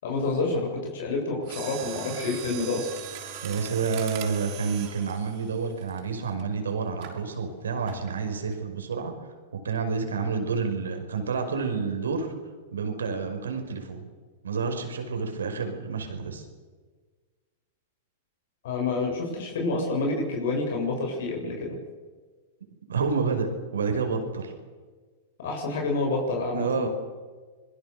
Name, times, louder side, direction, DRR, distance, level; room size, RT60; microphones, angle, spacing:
voice 1, 0.0-2.9 18.6-21.7 25.4-26.9, left 3 dB, 70° left, 0 dB, 7.7 m, -28 dB
Mechanisms, 1.4-6.4 7.0-7.2 7.9-8.2 8.5-8.6, right 9 dB, 50° right, 5.8 m, -40 dB
voice 2, 3.4-9.1 9.5-12.3 12.7-14.0 14.4-16.4 22.9-24.5 26.5-26.9, right 5 dB, 85° right, 5 dB, 5.5 m, -29 dB
25.5 x 22.0 x 6.9 m, 1.4 s
hypercardioid pair, 105°, 0 cm